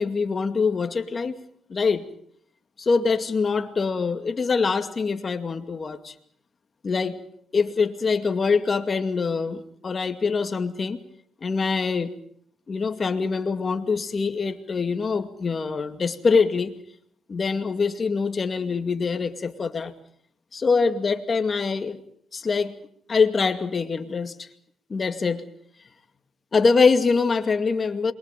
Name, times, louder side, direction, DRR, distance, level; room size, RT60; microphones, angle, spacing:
voice 1, 0.0-1.4 1.7-2.1 2.8-6.1 6.8-7.2 7.5-11.0 11.4-12.1 12.7-16.7 17.3-19.9 20.5-22.0 22.3-22.7 23.1-24.5 24.9-25.5 26.5-28.1, left 4 dB, 35° left, 8 dB, 2.3 m, -24 dB
28.0 x 23.0 x 5.3 m, 0.62 s
cardioid pair, 90°, 0 cm